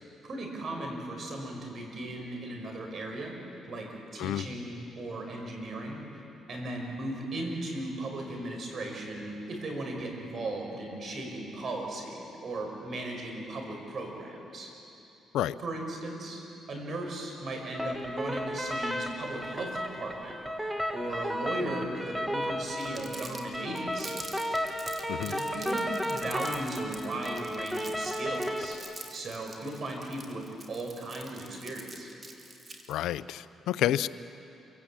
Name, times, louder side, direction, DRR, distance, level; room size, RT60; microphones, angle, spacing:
voice 1, 0.2-3.4 3.7-6.0 6.5-14.7 15.6-16.4 16.7-24.3 25.1-28.8 29.1-32.1, right 1 dB, 50° right, 2 dB, 5.6 m, -37 dB
sound 1, 17.7-28.7, equal, 5° right, 1.8 m, -34 dB
Crumpling crinkling, 22.8-33.0, right 3 dB, 35° right, 2.9 m, -45 dB
voice 2, 32.9-34.1, left 12 dB, 85° left, 16 dB, 0.5 m, -29 dB
27.5 x 17.0 x 8.7 m, 2.9 s
cardioid pair, 90°, 0 cm